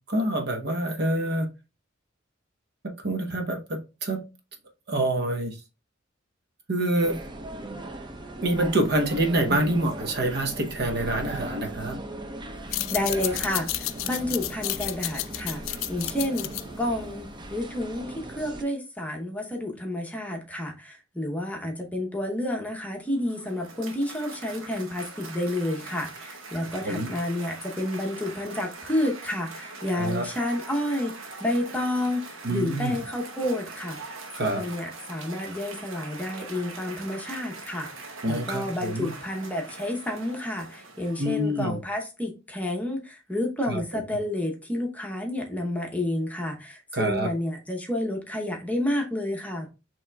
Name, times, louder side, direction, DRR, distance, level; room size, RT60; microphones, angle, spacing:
voice 1, 0.1-1.5 3.0-4.2 4.9-5.5 6.7-7.2 8.4-12.0 26.8-27.1 29.9-30.2 32.4-32.9 34.4-34.6 38.2-39.1 41.2-41.8 43.7-44.0 46.9-47.3, right 1 dB, 55° right, 0.9 m, -26 dB
sound 1, 7.0-18.6, right 2 dB, 25° right, 0.5 m, -38 dB
sound 2, 12.6-17.7, left 16 dB, 80° left, 0.3 m, -32 dB
voice 2, 12.9-16.5 16.8-31.1 31.4-49.7, left 1 dB, 10° left, 0.8 m, -30 dB
Cheering / Applause, 23.0-41.6, right 3 dB, 85° right, 1.0 m, -42 dB
7.0 x 3.1 x 2.3 m
head